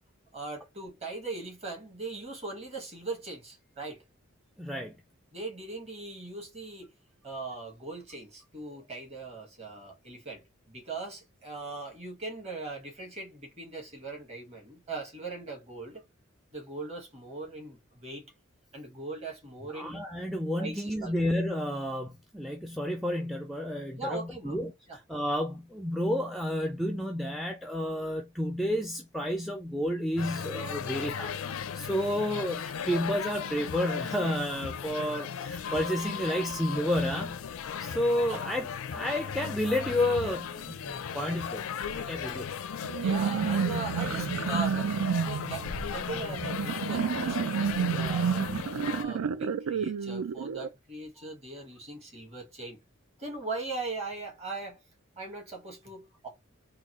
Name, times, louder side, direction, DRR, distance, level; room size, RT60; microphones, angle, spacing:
voice 1, 0.3-4.0 5.3-6.9 7.2-16.0 16.5-18.3 18.7-20.0 20.6-21.1 24.0-24.6 24.9-25.0 32.3-32.5 38.3-38.4 43.0-44.9 45.3-48.5 48.9-52.8 53.2-54.8 55.2-56.3, right 3 dB, 30° right, 1.5 m, -40 dB
voice 2, 4.6-4.9 19.7-24.7 25.1-37.4 37.8-42.5, left 1 dB, ahead, 0.4 m, -31 dB
sound 1, 30.2-49.0, left 7 dB, 75° left, 0.4 m, -36 dB
sound 2, 42.8-50.7, right 7 dB, 85° right, 0.4 m, -30 dB
3.7 x 2.3 x 3.0 m
head